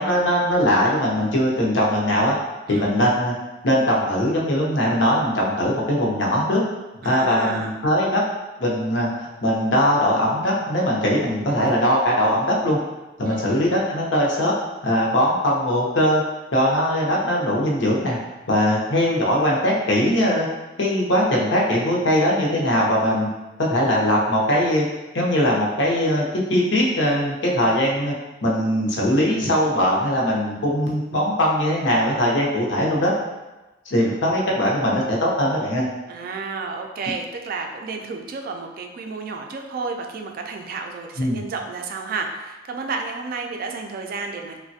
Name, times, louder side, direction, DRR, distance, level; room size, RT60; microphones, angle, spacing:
voice 1, 0.0-2.4 2.7-3.3 3.6-6.6 7.0-8.2 8.6-12.8 13.2-14.5 14.8-16.2 16.5-18.2 18.5-20.5 20.8-23.3 23.6-24.9 25.1-28.1 28.4-33.1 33.9-35.8 41.2-41.4, equal, 85° left, -3 dB, 0.7 m, -20 dB
voice 2, 7.0-7.7 13.2-13.7 36.1-44.6, right 4 dB, 50° right, 3 dB, 0.3 m, -31 dB
3.2 x 2.1 x 2.6 m, 1.1 s
head